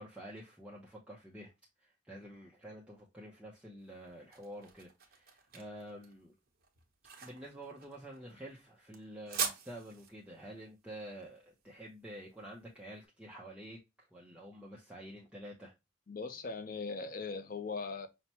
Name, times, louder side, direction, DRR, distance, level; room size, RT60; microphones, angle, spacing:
voice 1, 0.0-1.5 1.8-6.3 7.2-15.7, right 1 dB, 5° right, 0.6 m, -49 dB
sound 1, 3.8-12.8, right 6 dB, 45° right, 1.0 m, -44 dB
voice 2, 16.1-18.1, left 4 dB, 45° left, 0.5 m, -39 dB
5.6 x 2.1 x 2.8 m
head